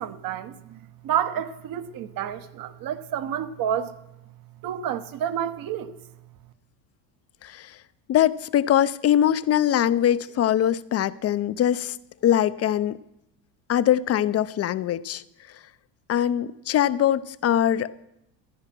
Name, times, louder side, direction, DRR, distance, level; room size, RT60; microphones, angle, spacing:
voice 1, 0.0-3.9 4.6-6.0, right 9 dB, 50° right, 1.1 m, -29 dB
voice 2, 7.4-7.8 8.1-12.0 12.2-13.0 13.7-15.2 16.1-17.9, left 11 dB, 35° left, 0.5 m, -22 dB
14.0 x 10.5 x 6.0 m
supercardioid pair, 115°, 44 cm